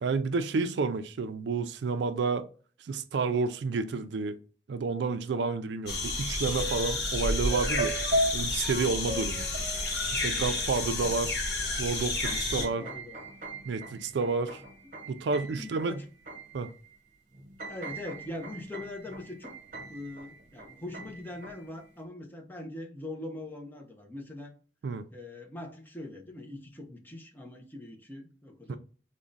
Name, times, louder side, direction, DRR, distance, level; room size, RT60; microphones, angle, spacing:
voice 1, 0.0-2.5 2.9-4.4 4.7-8.0 8.3-9.5 10.1-11.3 11.8-12.9 13.7-14.6 15.1-16.0 16.5-16.7 24.8-25.1 28.7-28.8, right 4 dB, 75° right, 0.4 m, -30 dB
sound 1, 5.9-12.7, left 2 dB, 65° left, 0.8 m, -31 dB
sound 2, 6.6-7.2 7.5-10.4 11.2-11.3 11.6-17.0 17.3-21.8, right 1 dB, 45° right, 0.8 m, -37 dB
voice 2, 10.9-11.2 12.5-13.2 15.6-16.0 17.7-19.5 19.9-24.5 25.1-28.8, left 1 dB, 10° left, 0.6 m, -42 dB
3.5 x 2.1 x 3.8 m
head